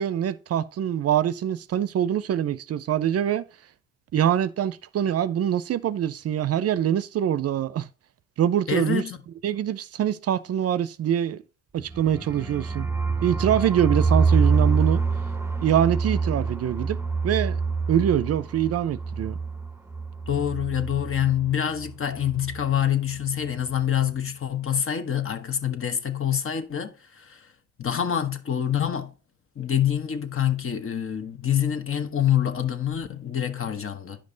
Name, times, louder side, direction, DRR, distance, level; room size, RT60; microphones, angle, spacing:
voice 1, 0.0-3.4 4.1-7.9 8.4-9.0 9.4-11.4 11.7-12.9 13.2-15.0 15.6-17.0 17.2-17.6 17.9-19.4, right 10 dB, 55° right, 0.5 m, -24 dB
voice 2, 8.7-9.2 20.3-27.5 27.8-29.1 29.6-34.2, left 9 dB, 45° left, 1.3 m, -26 dB
sound 1, 11.8-21.5 21.8-21.9 22.2-22.7, right 4 dB, 10° right, 0.7 m, -26 dB
10.0 x 5.3 x 3.8 m
cardioid pair, 90°, 30 cm